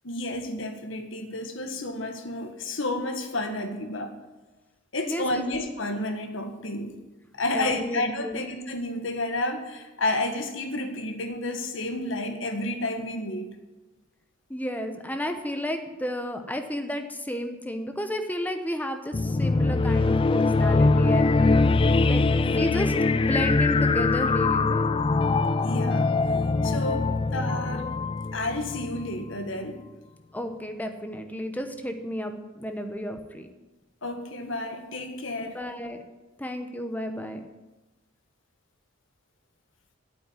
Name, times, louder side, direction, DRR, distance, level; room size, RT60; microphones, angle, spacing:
voice 1, 0.0-4.1 4.9-7.0 7.3-13.5 25.6-26.1 26.6-27.9 28.3-29.8 34.0-35.6, left 2 dB, 65° left, 5 dB, 1.6 m, -31 dB
voice 2, 5.1-5.5 7.5-8.4 14.5-21.6 22.1-24.9 30.3-33.5 35.4-36.0 36.4-37.4, equal, 10° left, 6 dB, 1.0 m, -32 dB
sound 1, 19.1-29.3, left 3 dB, 25° left, 0.4 m, -23 dB
8.8 x 8.8 x 9.1 m, 1.1 s
head